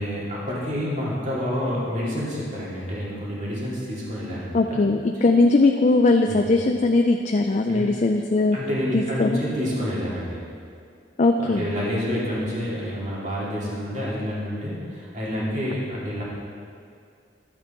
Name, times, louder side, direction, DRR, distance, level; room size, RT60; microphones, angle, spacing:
voice 1, 0.0-4.8 6.2-6.4 7.7-7.9 8.5-10.4 11.4-16.2, equal, 40° right, -7 dB, 2.6 m, -28 dB
voice 2, 4.5-8.6 8.9-9.4 11.2-11.6, left 3 dB, 40° left, 4 dB, 0.4 m, -20 dB
12.0 x 8.1 x 4.4 m, 2.3 s
head